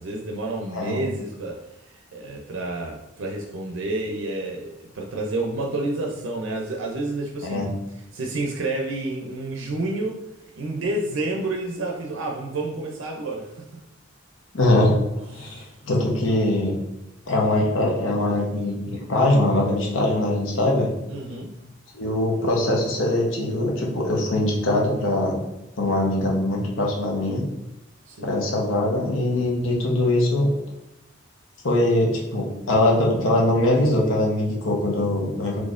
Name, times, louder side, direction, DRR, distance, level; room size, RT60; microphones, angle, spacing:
voice 1, 0.0-7.7 8.1-10.2 10.6-13.7 15.3-15.7 21.1-21.5 28.1-28.4, right 2 dB, 70° right, 0 dB, 0.5 m, -29 dB
voice 2, 0.7-1.0 7.4-7.7 14.5-15.0 15.3-16.8 17.3-20.9 21.9-25.4 25.8-27.4 28.2-30.5 31.6-35.6, left 1 dB, 75° left, -1 dB, 0.9 m, -22 dB
4.0 x 3.1 x 2.5 m, 0.89 s
head